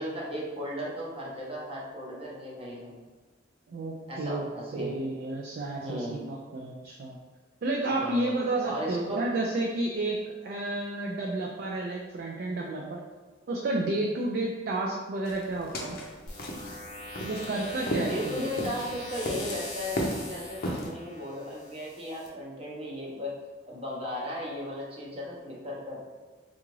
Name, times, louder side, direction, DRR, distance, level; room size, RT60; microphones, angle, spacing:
voice 1, 0.0-3.0 4.1-5.0 5.8-6.3 8.0-8.4 8.6-9.3 18.0-23.3 23.7-26.0, equal, 30° right, -5 dB, 0.7 m, -36 dB
voice 2, 3.7-4.4 4.7-7.2 7.6-13.0 13.5-16.0 17.3-18.4, right 2 dB, 50° right, -1 dB, 0.3 m, -31 dB
sound 1, 15.2-20.9, equal, 50° left, 0.5 m, -35 dB
sound 2, 16.3-22.3, left 1 dB, 20° left, 0.8 m, -42 dB
3.7 x 2.4 x 3.0 m, 1.3 s
head